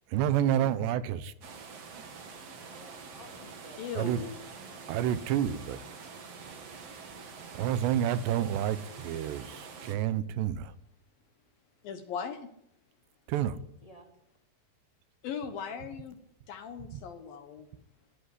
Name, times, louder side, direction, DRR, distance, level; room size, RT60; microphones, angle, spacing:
voice 1, 0.1-1.3 1.9-2.0 4.0-4.2 4.9-5.8 7.5-10.7 13.3-13.6 16.9-17.0, right 10 dB, 80° right, 15 dB, 3.0 m, -29 dB
sound 1, 1.4-10.0, right 5 dB, 45° right, 2.6 m, -46 dB
voice 2, 2.7-5.1 13.5-14.2, equal, 10° left, 3 dB, 3.0 m, -56 dB
voice 3, 3.8-4.3 11.8-12.5 15.2-16.2 16.5-17.7, left 6 dB, 65° left, 9 dB, 2.6 m, -38 dB
19.5 x 15.0 x 9.9 m, 0.78 s
omnidirectional pair, 5.0 m